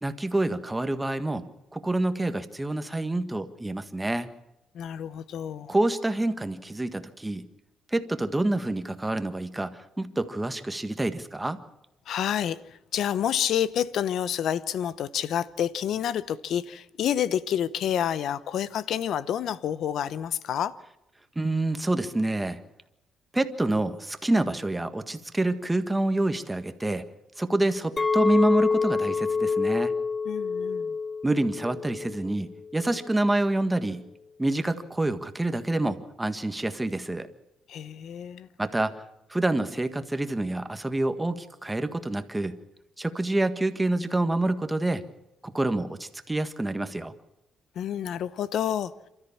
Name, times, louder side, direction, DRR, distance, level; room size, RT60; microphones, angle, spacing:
voice 1, 0.0-4.3 5.7-7.4 7.9-11.6 21.3-22.6 23.3-27.1 27.4-29.9 31.2-34.1 34.4-37.3 38.6-39.0 39.3-42.6 43.0-45.1 45.4-47.1, right 2 dB, 15° right, 1.6 m, -27 dB
voice 2, 4.7-5.7 12.1-20.8 30.2-31.0 37.7-38.5 47.7-48.9, left 9 dB, 70° left, 0.9 m, -29 dB
Chink clink, 28.0-32.3 32.6-33.1, left 4 dB, 25° left, 1.0 m, -27 dB
27.5 x 13.5 x 7.2 m
cardioid pair, 90°, 0 cm